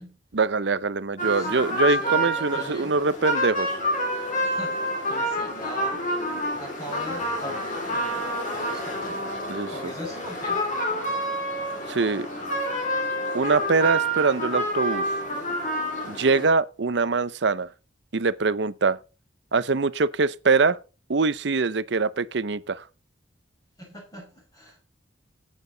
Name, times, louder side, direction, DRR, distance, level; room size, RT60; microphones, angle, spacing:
voice 1, 0.3-3.8 9.5-9.7 11.9-12.3 13.3-15.0 16.1-17.7 18.1-19.0 19.5-20.8 21.1-22.8, right 4 dB, 65° right, 0.7 m, -23 dB
sound 1, 1.2-16.5, equal, 40° left, 4.4 m, -28 dB
voice 2, 1.2-2.9 4.4-6.0 6.6-8.3 8.5-9.3 9.7-10.6 23.8-24.8, left 1 dB, 20° left, 5.1 m, -40 dB
14.0 x 9.1 x 3.9 m
head